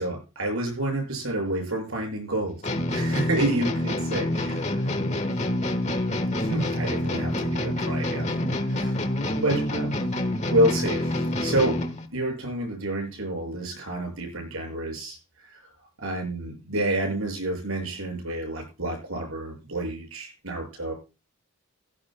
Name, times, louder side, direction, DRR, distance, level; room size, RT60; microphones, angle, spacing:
voice 1, 0.0-2.6 2.9-4.9 6.4-8.3 8.7-9.0 9.4-9.9 10.5-11.8 12.1-15.2 15.5-15.6 16.0-20.9, right 1 dB, 75° right, 2 dB, 6.8 m, -29 dB
sound 1, 2.6-12.1, left 1 dB, 30° left, 1.4 m, -27 dB
16.5 x 16.0 x 2.3 m, 0.30 s
head